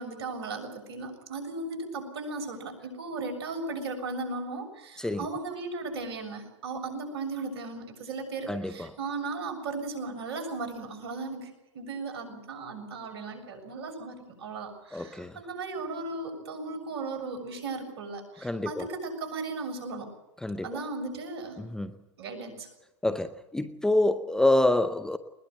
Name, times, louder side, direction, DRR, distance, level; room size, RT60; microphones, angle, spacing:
voice 1, 0.0-20.1 20.6-21.6 22.2-22.7, right 3 dB, 60° right, 5 dB, 7.1 m, -36 dB
voice 2, 8.5-8.9 14.9-15.4 18.4-18.9 20.4-20.8 21.6-21.9 23.0-25.2, left 1 dB, 5° left, 12 dB, 0.7 m, -27 dB
21.0 x 21.0 x 7.9 m, 0.97 s
hypercardioid pair, 120°, 15 cm